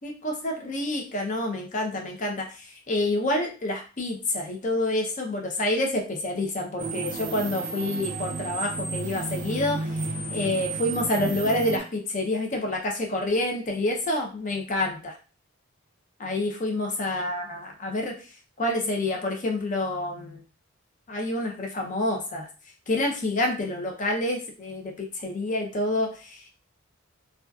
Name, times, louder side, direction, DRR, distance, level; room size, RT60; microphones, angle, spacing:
voice 1, 0.0-10.0 10.3-15.1 16.2-18.1 18.6-20.4 21.1-22.5 22.9-26.5, left 1 dB, 35° left, 1 dB, 0.5 m, -28 dB
sound 1, 6.8-11.8, right 3 dB, 35° right, 0.3 m, -32 dB
2.6 x 2.3 x 2.3 m, 0.35 s
head